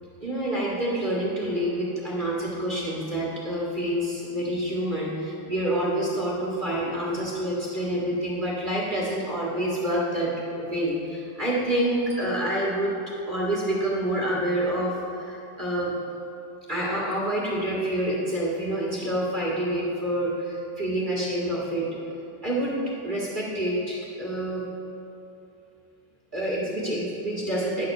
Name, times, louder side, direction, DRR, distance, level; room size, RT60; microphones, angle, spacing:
voice 1, 0.2-12.9 13.3-15.9 16.7-21.9 22.4-22.8 23.0-24.7 26.3-27.8, right 1 dB, 25° right, -5 dB, 1.7 m, -27 dB
11.0 x 4.1 x 6.4 m, 2.8 s
omnidirectional pair, 2.4 m